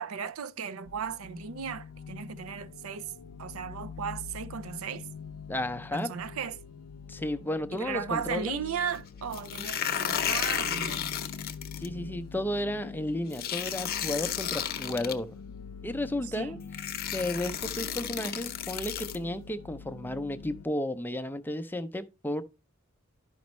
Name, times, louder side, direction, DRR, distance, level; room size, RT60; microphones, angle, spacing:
voice 1, 0.0-3.1 3.4-5.1 5.9-6.6 7.7-11.1 16.3-16.6, right 7 dB, 85° right, 0.5 m, -36 dB
sound 1, 0.9-20.7, left 6 dB, 90° left, 0.4 m, -45 dB
voice 2, 5.5-6.1 7.1-8.6 11.8-15.3 15.8-16.6 17.1-22.4, left 1 dB, 10° left, 0.4 m, -33 dB
sound 2, 9.3-11.9 13.3-15.1 16.2-16.3 16.7-19.2, left 8 dB, 45° left, 0.7 m, -33 dB
11.5 x 5.2 x 3.1 m
head